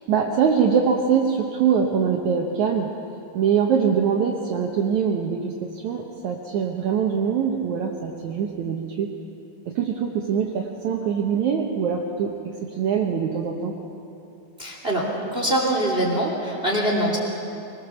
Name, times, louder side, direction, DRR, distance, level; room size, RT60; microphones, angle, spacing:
voice 1, 0.1-2.9 3.3-9.1 9.7-12.4 12.8-13.7, right 7 dB, 65° right, 1 dB, 2.1 m, -23 dB
voice 2, 14.6-17.2, right 1 dB, 15° right, -1 dB, 2.6 m, -23 dB
25.5 x 19.5 x 7.1 m, 2.7 s
omnidirectional pair, 4.2 m